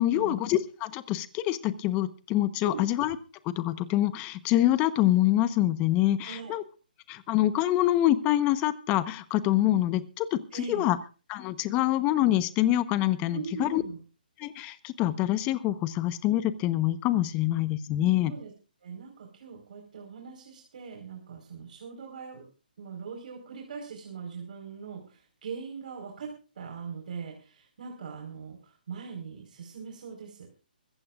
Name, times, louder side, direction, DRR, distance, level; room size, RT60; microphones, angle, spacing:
voice 1, 0.0-3.2 3.4-6.6 7.1-11.0 11.3-13.8 14.4-18.3, left 14 dB, 25° left, 13 dB, 1.1 m, -26 dB
voice 2, 6.2-6.5 10.5-10.8 13.3-14.0 18.2-18.5 18.8-22.4 22.8-26.3 26.5-30.5, right 6 dB, 60° right, 1 dB, 4.7 m, -41 dB
24.5 x 15.0 x 2.5 m, 0.35 s
hypercardioid pair, 150°, 5 cm